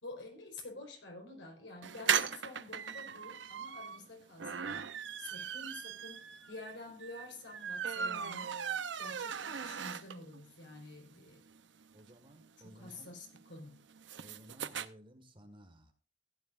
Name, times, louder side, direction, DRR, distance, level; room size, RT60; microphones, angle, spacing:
voice 1, 0.0-8.5 9.0-11.4 12.7-13.8, left 2 dB, 85° left, 2 dB, 4.2 m, -49 dB
sound 1, 1.8-10.4 10.8-10.9 11.1-11.2 11.5-14.9, right 7 dB, 75° right, 0.7 m, -38 dB
voice 2, 11.9-13.1 14.2-15.9, equal, 30° right, 6 dB, 1.7 m, -56 dB
15.5 x 10.5 x 2.5 m, 0.37 s
head